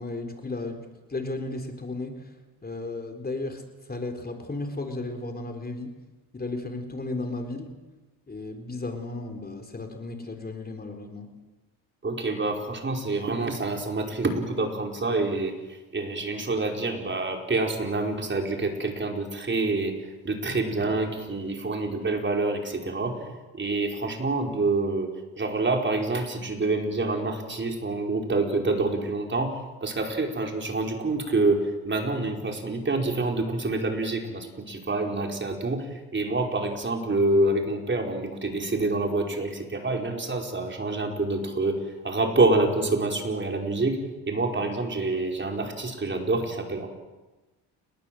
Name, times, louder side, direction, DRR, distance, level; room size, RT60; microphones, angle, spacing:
voice 1, 0.0-2.3 2.6-5.9 6.3-7.7 8.3-11.3, left 2 dB, 20° left, 5 dB, 4.0 m, -34 dB
voice 2, 12.0-19.9 20.2-25.1 25.4-44.0 44.3-46.9, right 2 dB, 25° right, 3 dB, 5.0 m, -27 dB
29.5 x 20.5 x 7.8 m, 1.1 s
cardioid pair, 100°, 41 cm